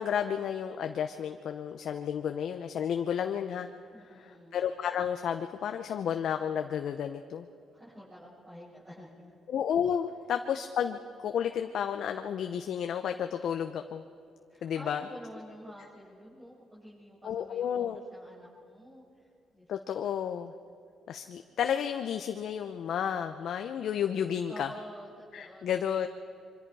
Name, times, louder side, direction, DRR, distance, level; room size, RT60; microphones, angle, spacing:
voice 1, 0.0-3.7 4.1-7.5 9.5-14.0 14.6-15.0 17.2-18.0 19.7-20.5 21.1-24.7 25.3-26.1, left 8 dB, 70° left, 6 dB, 0.8 m, -32 dB
voice 2, 3.9-4.6 7.7-9.3 14.5-19.7 20.0-20.1 24.5-25.7 26.0-26.1, equal, 20° right, -9 dB, 7.1 m, -49 dB
26.0 x 24.0 x 4.8 m, 2.5 s
cardioid pair, 90°, 0 cm